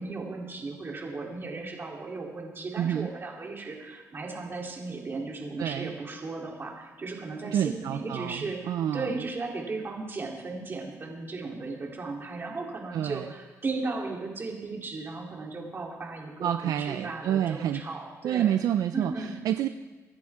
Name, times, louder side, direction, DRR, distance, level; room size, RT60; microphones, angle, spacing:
voice 1, 0.0-18.5 18.9-19.3, right 3 dB, 35° right, -1 dB, 3.4 m, -36 dB
voice 2, 2.8-3.1 5.6-5.9 7.4-9.1 12.9-13.3 16.4-17.8 18.2-19.7, right 10 dB, 75° right, 9 dB, 0.5 m, -28 dB
25.5 x 10.5 x 3.7 m, 1.2 s
cardioid pair, 95°, 6 cm